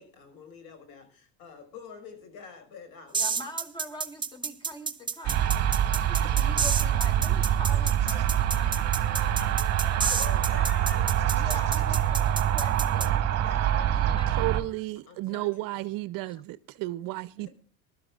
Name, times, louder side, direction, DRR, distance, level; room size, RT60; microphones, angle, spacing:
voice 1, 0.0-3.4 5.2-5.3 8.5-8.6 10.0-11.1 11.3-11.9 13.4-13.8 15.1-15.7 17.4-17.5, left 6 dB, 65° left, 5.4 m, -46 dB
voice 2, 3.1-5.5 6.1-10.4 11.3-13.2 13.5-14.7 16.2-16.4, left 1 dB, 10° left, 2.8 m, -44 dB
sound 1, 3.1-13.1, right 5 dB, 10° right, 0.9 m, -30 dB
sound 2, 5.2-14.6, right 10 dB, 40° right, 1.7 m, -25 dB
voice 3, 14.3-17.5, right 19 dB, 60° right, 0.6 m, -33 dB
22.5 x 12.5 x 2.4 m
cardioid pair, 130°, 39 cm